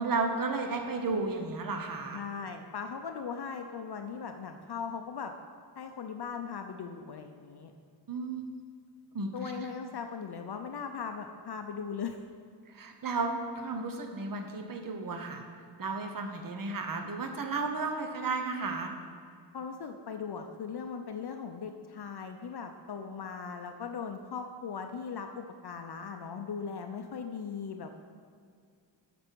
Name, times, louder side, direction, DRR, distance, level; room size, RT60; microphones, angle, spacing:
voice 1, 0.0-2.2 8.1-8.4 9.1-9.3 12.7-15.4 15.8-18.9, right 3 dB, 45° right, 4 dB, 0.8 m, -33 dB
voice 2, 2.1-5.3 5.7-7.7 9.3-12.2 19.5-27.9, left 6 dB, 55° left, 5 dB, 0.5 m, -39 dB
8.5 x 6.1 x 4.5 m, 2.2 s
wide cardioid pair, 100°, 46 cm